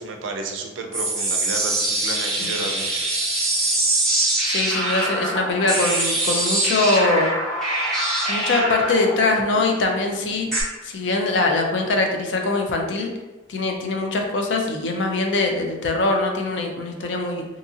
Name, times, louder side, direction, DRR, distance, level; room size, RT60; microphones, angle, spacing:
voice 1, 0.0-3.1, right 3 dB, 75° right, 3 dB, 0.4 m, -31 dB
sound 1, 0.9-10.6, right 1 dB, 5° left, 0.8 m, -24 dB
voice 2, 4.4-7.3 8.3-10.5 10.8-13.1 13.5-17.4, left 2 dB, 65° left, 2 dB, 0.4 m, -22 dB
2.9 x 2.6 x 2.4 m, 1.1 s
head